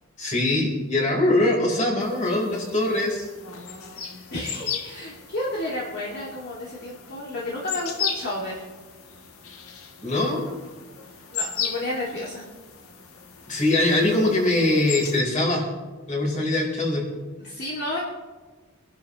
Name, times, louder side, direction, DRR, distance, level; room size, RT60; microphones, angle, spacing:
voice 1, 0.2-3.3 10.0-10.5 13.5-15.7 16.1-17.1, left 2 dB, 35° left, -1 dB, 4.0 m, -22 dB
sound 1, 2.0-15.2, left 7 dB, 80° left, 1.4 m, -36 dB
voice 2, 3.9-8.6 11.3-12.4 17.4-18.0, left 1 dB, 50° left, -6 dB, 2.4 m, -31 dB
25.5 x 11.5 x 3.1 m, 1.3 s
head